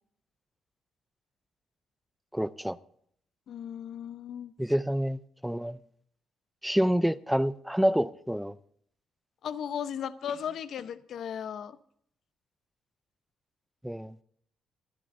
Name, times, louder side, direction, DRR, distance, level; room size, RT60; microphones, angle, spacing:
voice 1, 2.3-2.8 4.6-5.8 6.6-8.5 13.8-14.1, equal, 5° right, 0.5 m, -27 dB
voice 2, 3.5-4.5 9.4-11.8, left 8 dB, 65° left, 0.8 m, -36 dB
26.0 x 10.0 x 2.6 m
cardioid pair, 90°, 0 cm